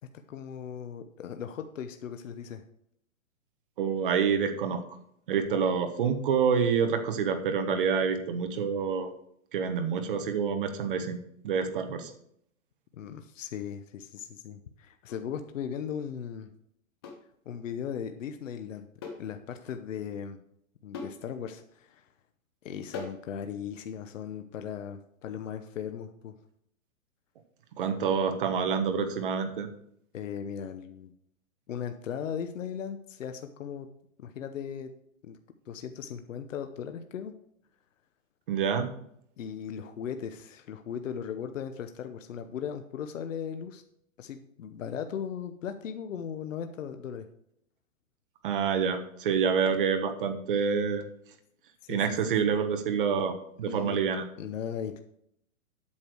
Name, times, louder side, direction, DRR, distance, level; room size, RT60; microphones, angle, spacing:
voice 1, 0.3-2.6 12.9-16.5 17.5-18.9 19.2-20.4 20.8-22.1 22.6-26.3 30.1-31.1 31.7-33.9 34.2-34.9 35.2-35.4 35.7-37.3 39.4-43.8 44.2-47.3 51.8-52.2 53.6-54.0 54.4-55.0, left 8 dB, 65° left, 8 dB, 0.9 m, -37 dB
voice 2, 3.8-4.8 5.3-9.1 9.5-11.2 11.4-12.1 27.8-29.7 38.5-38.9 48.4-51.0 51.9-54.2, right 6 dB, 40° right, 7 dB, 1.1 m, -27 dB
sound 1, 15.1-15.3 17.0-17.3 19.0-19.3 19.6-19.7 20.9-21.2 22.9-23.3, left 3 dB, 15° left, 0.7 m, -41 dB
8.6 x 6.7 x 4.6 m, 0.71 s
hypercardioid pair, 170°, 41 cm